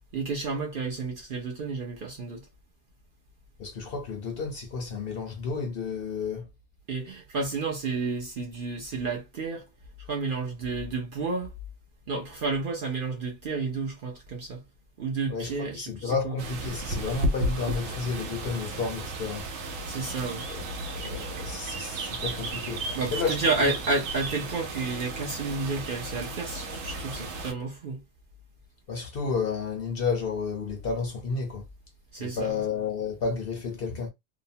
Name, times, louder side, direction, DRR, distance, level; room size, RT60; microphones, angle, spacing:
voice 1, 0.1-2.5 6.9-9.7 10.0-11.5 12.1-14.6 15.0-16.3 19.9-20.5 22.9-28.0 32.1-32.6, right 3 dB, 55° right, 0.6 m, -31 dB
voice 2, 3.6-6.5 15.3-19.4 20.5-23.7 28.9-31.6 32.2-34.1, left 5 dB, 60° left, 0.7 m, -31 dB
sound 1, 16.4-27.5, right 2 dB, 85° right, 1.1 m, -34 dB
2.8 x 2.1 x 2.7 m
omnidirectional pair, 1.3 m